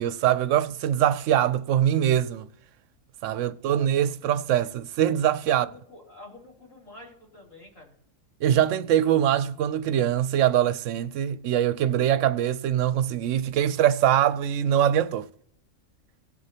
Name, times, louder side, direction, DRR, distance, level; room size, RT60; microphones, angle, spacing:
voice 1, 0.0-2.5 3.2-5.7 8.4-15.3, right 10 dB, 75° right, 0.9 m, -23 dB
voice 2, 3.3-3.7 5.5-7.9, left 2 dB, 90° left, 3.8 m, -49 dB
18.5 x 6.4 x 2.8 m
omnidirectional pair, 1.3 m